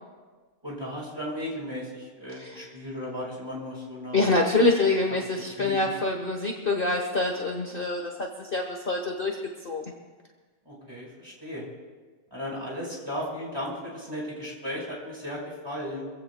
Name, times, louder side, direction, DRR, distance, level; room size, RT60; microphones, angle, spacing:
voice 1, 0.6-4.2 5.3-5.7 10.6-11.6 12.3-16.1, equal, 15° right, -4 dB, 4.9 m, -35 dB
voice 2, 4.1-9.4 9.6-9.8, left 2 dB, 40° left, 1 dB, 1.4 m, -25 dB
25.5 x 16.0 x 2.2 m, 1.4 s
omnidirectional pair, 1.6 m